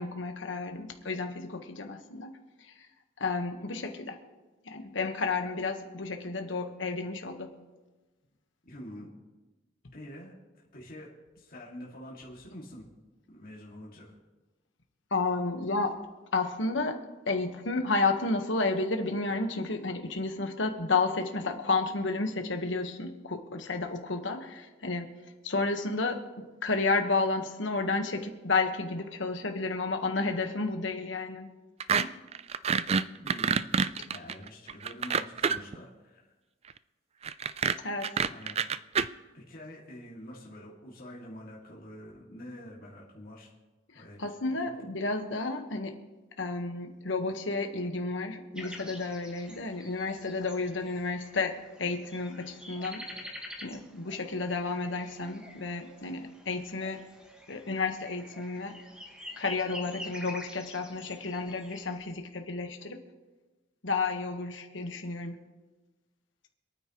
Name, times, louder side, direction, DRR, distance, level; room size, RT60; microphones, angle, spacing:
voice 1, 0.0-2.3 2.7-2.9 3.2-4.2 4.6-7.5 15.1-16.0 16.3-17.0 17.3-25.1 25.4-26.2 26.6-31.5 32.0-32.2 37.8-38.1 44.2-46.0 46.4-53.0 53.6-57.1 57.5-58.8 59.4-63.0 63.8-65.4, left 3 dB, 75° left, 5 dB, 1.4 m, -31 dB
voice 2, 8.6-9.1 9.9-12.8 13.3-14.1 33.2-33.7 34.1-36.3 38.2-38.6 39.3-43.5 43.9-44.2 44.5-44.7, equal, 50° left, -4 dB, 2.3 m, -46 dB
sound 1, 31.8-32.0 32.3-35.8 37.2-39.1, right 6 dB, 35° right, 0.4 m, -27 dB
sound 2, 48.6-62.0, left 1 dB, 5° right, 1.6 m, -47 dB
26.5 x 9.4 x 3.1 m, 1.2 s
head